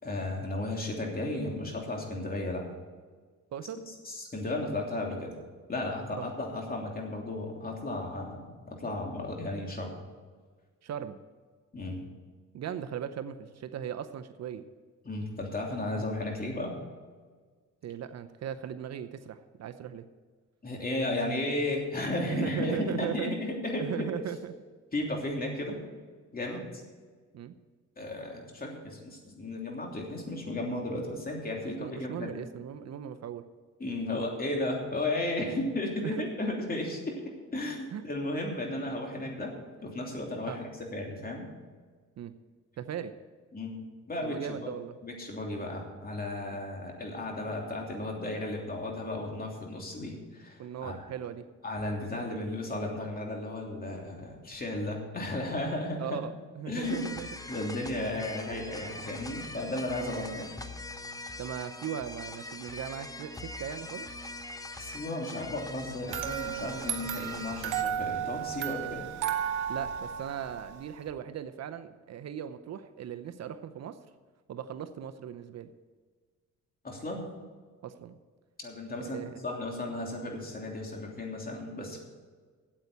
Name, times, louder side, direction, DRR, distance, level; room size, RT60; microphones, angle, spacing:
voice 1, 0.0-2.7 4.0-5.3 5.7-9.9 11.7-12.0 15.0-16.7 20.6-24.1 24.9-25.8 26.3-26.6 28.0-32.4 33.8-37.2 37.5-39.5 39.8-41.5 43.5-43.8 44.1-44.7 45.0-51.0 51.6-56.2 56.7-57.1 57.5-60.5 64.8-69.1 76.8-77.2 78.6-82.0, left 1 dB, 30° left, 0 dB, 3.1 m, -34 dB
voice 2, 10.8-11.2 12.5-14.6 17.8-20.0 22.3-23.4 23.8-24.5 26.5-26.6 27.3-27.6 31.8-33.4 36.0-36.2 37.9-38.0 40.5-40.6 42.2-42.3 42.8-43.1 44.2-44.9 46.5-46.6 50.6-51.4 56.0-57.3 59.9-60.4 61.4-64.1 69.7-74.0 74.5-75.7 77.8-78.2 79.0-79.3, right 9 dB, 60° right, 10 dB, 0.7 m, -38 dB
sound 1, 56.8-67.8, left 2 dB, 10° left, 0.8 m, -42 dB
sound 2, 66.1-71.1, right 9 dB, 85° right, 1.1 m, -34 dB
8.8 x 8.2 x 8.7 m, 1.5 s
cardioid pair, 90°, 30 cm